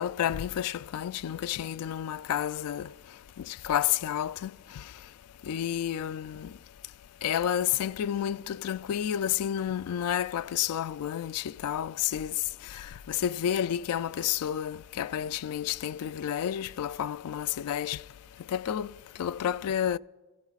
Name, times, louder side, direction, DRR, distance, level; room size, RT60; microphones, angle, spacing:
voice 1, 0.0-2.9 3.4-4.8 5.4-6.5 7.2-12.4 12.7-18.0 18.5-18.9 19.2-20.0, left 10 dB, 85° left, 0.3 m, -30 dB
29.0 x 16.0 x 2.4 m
head